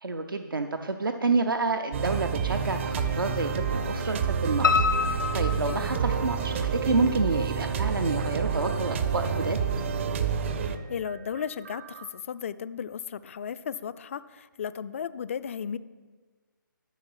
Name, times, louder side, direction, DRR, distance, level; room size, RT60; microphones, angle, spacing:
voice 1, 0.0-9.6, right 3 dB, 80° right, 5 dB, 0.6 m, -29 dB
sound 1, 1.9-12.1, right 6 dB, 35° right, 0.6 m, -29 dB
Piano, 4.6-6.6 7.0-7.8 8.2-8.3 8.7-8.8 9.1-9.2, left 6 dB, 75° left, 0.9 m, -27 dB
voice 2, 10.6-15.8, left 7 dB, 40° left, 15 dB, 0.3 m, -35 dB
12.5 x 4.9 x 5.6 m, 1.4 s
figure-of-eight pair, 145°, 11 cm